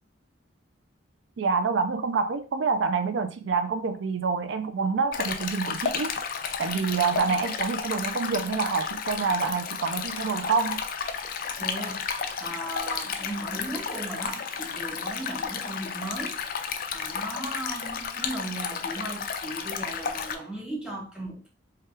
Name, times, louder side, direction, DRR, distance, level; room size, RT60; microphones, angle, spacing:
voice 1, 1.4-6.1 6.6-10.8, right 5 dB, 75° right, 0.4 m, -27 dB
Stream, 5.1-20.4, left 6 dB, 50° left, 0.4 m, -32 dB
voice 2, 11.6-16.4 16.9-21.5, right 1 dB, 5° right, 0.9 m, -37 dB
3.3 x 2.3 x 4.3 m
head